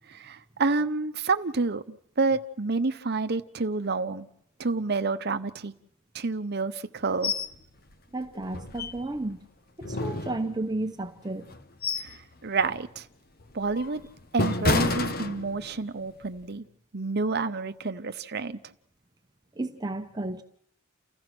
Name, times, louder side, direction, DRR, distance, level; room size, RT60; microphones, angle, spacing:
voice 1, 0.1-4.3 4.6-5.7 6.1-7.3 12.0-13.1 13.5-14.0 14.3-16.6 16.9-18.6, right 3 dB, 50° right, 0.9 m, -29 dB
sound 1, 7.2-7.5 7.9-8.0 8.5-9.3 9.8-10.8 11.4-12.2 12.6-12.9 13.4-15.9 16.2-16.4, left 3 dB, 45° left, 1.2 m, -30 dB
voice 2, 8.1-9.4 9.8-11.5 19.6-20.4, right 2 dB, 20° right, 0.8 m, -33 dB
29.5 x 14.5 x 6.1 m
head